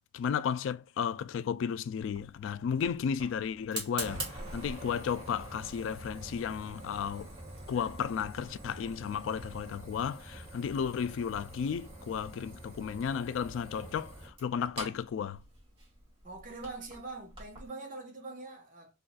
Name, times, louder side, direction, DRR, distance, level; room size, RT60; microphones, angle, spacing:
voice 1, 0.1-7.3 7.7-15.4, left 7 dB, 85° left, 0.3 m, -34 dB
Fire, 2.0-17.7, right 1 dB, 25° right, 1.7 m, -45 dB
voice 2, 16.2-18.9, right 3 dB, 45° right, 1.0 m, -43 dB
3.9 x 2.4 x 2.2 m
head